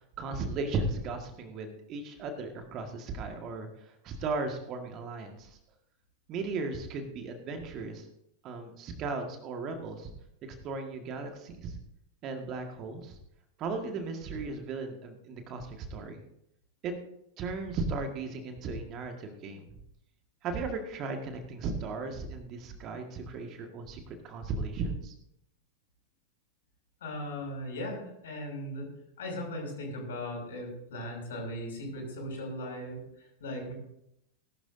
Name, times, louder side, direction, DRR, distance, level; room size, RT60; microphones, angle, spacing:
voice 1, 0.2-5.6 6.3-8.1 8.4-10.1 10.4-11.8 12.2-13.2 13.6-16.2 16.8-16.9 17.4-19.6 20.4-25.1, right 3 dB, 35° right, 5 dB, 1.8 m, -36 dB
voice 2, 27.0-28.9 29.2-33.7, left 1 dB, 60° left, 0 dB, 6.2 m, -38 dB
18.5 x 12.0 x 2.7 m, 0.78 s
figure-of-eight pair, 90°, 0 cm